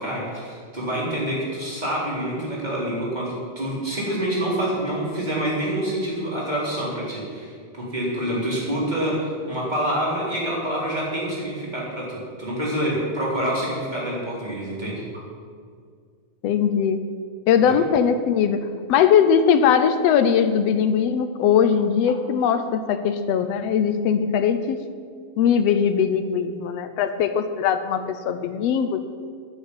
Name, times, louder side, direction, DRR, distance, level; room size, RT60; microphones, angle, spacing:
voice 1, 0.0-15.0 17.6-17.7, right 1 dB, 15° right, -5 dB, 3.8 m, -27 dB
voice 2, 16.4-17.0 17.5-24.8 25.4-29.0, left 7 dB, 75° left, 9 dB, 1.6 m, -20 dB
10.5 x 8.2 x 9.6 m, 2.1 s
omnidirectional pair, 3.4 m